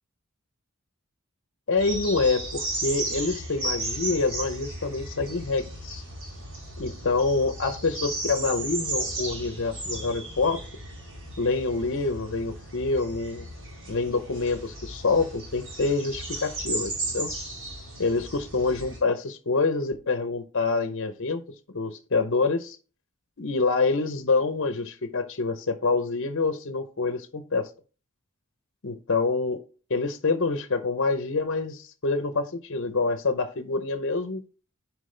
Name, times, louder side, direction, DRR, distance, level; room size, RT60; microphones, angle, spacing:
voice 1, 1.7-6.0 6.8-10.6 11.4-13.5 13.9-17.3 18.0-21.4 21.7-22.8 23.4-27.7 28.8-29.6 29.9-34.4, left 3 dB, 60° left, 10 dB, 0.7 m, -26 dB
sound 1, 1.8-19.0, right 2 dB, 65° right, 3.8 m, -35 dB
10.5 x 4.7 x 3.3 m, 0.35 s
head